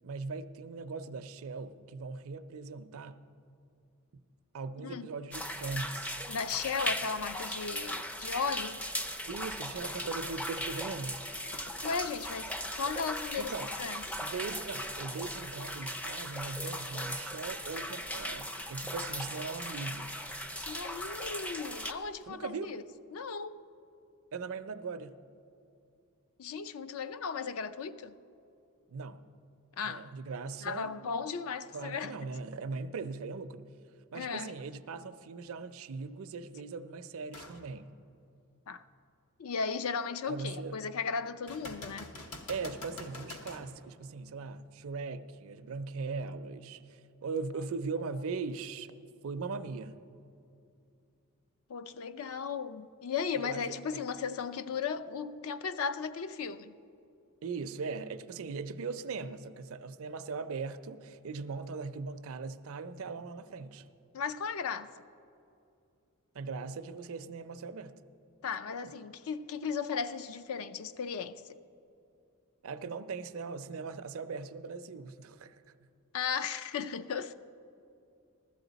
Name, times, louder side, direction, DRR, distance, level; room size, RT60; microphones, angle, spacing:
voice 1, 0.0-3.2 4.5-6.1 9.3-11.2 13.4-13.7 14.2-20.1 22.3-22.8 24.3-25.2 28.9-29.2 29.8-31.2 31.7-33.7 34.1-37.9 40.3-40.8 42.5-48.9 49.2-50.0 53.4-54.0 57.4-63.9 66.3-67.9 72.6-75.6, right 4 dB, 65° right, 0.5 m, -39 dB
voice 2, 4.8-5.1 6.3-8.8 11.8-13.5 13.8-14.1 20.6-22.8 23.1-23.6 26.4-28.2 29.8-30.1 30.6-32.1 34.1-34.5 38.7-38.8 39.4-42.1 51.7-56.7 64.1-65.1 68.4-71.6 76.1-77.3, left 5 dB, 65° left, 0.4 m, -36 dB
sound 1, 5.3-21.9, equal, 5° left, 0.4 m, -38 dB
sound 2, 9.3-22.3, left 2 dB, 50° left, 0.9 m, -57 dB
sound 3, 37.3-37.6 38.2-38.3 41.5-43.7 47.4-47.5, left 2 dB, 85° left, 1.2 m, -45 dB
15.5 x 13.0 x 4.0 m
head